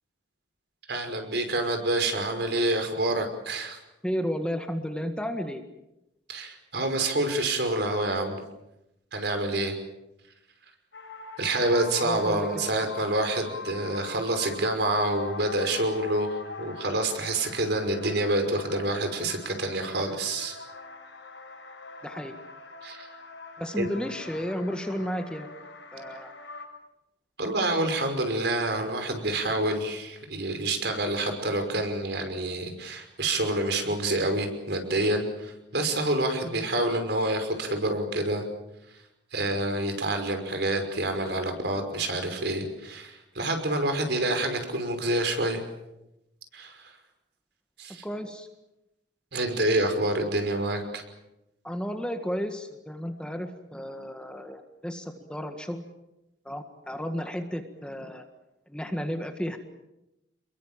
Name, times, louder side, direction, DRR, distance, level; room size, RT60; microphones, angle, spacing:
voice 1, 0.9-3.8 6.3-8.4 9.1-9.7 11.4-20.6 22.8-23.1 23.8-23.9 27.4-38.5 39.3-45.6 46.5-46.9 47.8-48.0 49.3-51.0, right 1 dB, 60° right, 6 dB, 5.6 m, -27 dB
voice 2, 4.0-5.6 12.0-12.9 22.0-22.4 23.6-25.5 25.9-26.3 36.4-36.6 48.0-48.5 51.6-55.8 56.5-58.2 58.7-59.6, equal, 5° left, 5 dB, 1.7 m, -33 dB
sound 1, 10.9-26.7, left 3 dB, 80° left, 7.2 m, -43 dB
28.5 x 22.5 x 7.6 m, 0.91 s
head